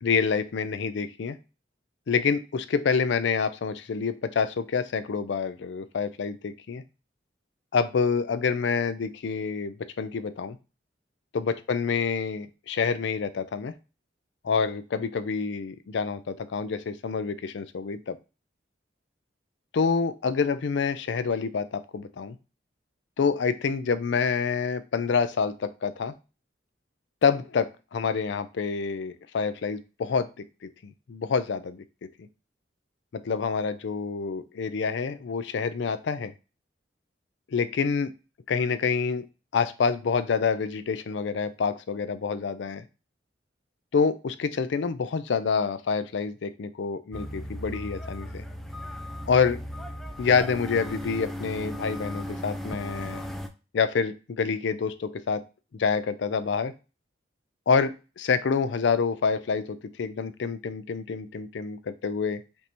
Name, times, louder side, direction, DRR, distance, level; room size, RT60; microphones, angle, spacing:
voice 1, 0.0-1.4 2.1-6.8 7.7-10.6 11.3-13.7 14.4-18.2 19.7-22.4 23.2-26.1 27.2-30.3 31.1-31.8 33.1-36.3 37.5-38.1 38.5-39.3 39.5-42.8 43.9-48.4 49.3-49.6 50.2-53.2 53.7-55.4 55.7-56.7 57.7-62.4, left 5 dB, 70° left, 12 dB, 0.4 m, -27 dB
sound 1, 47.1-53.5, equal, ahead, 0.4 m, -36 dB
5.2 x 2.7 x 2.9 m, 0.30 s
head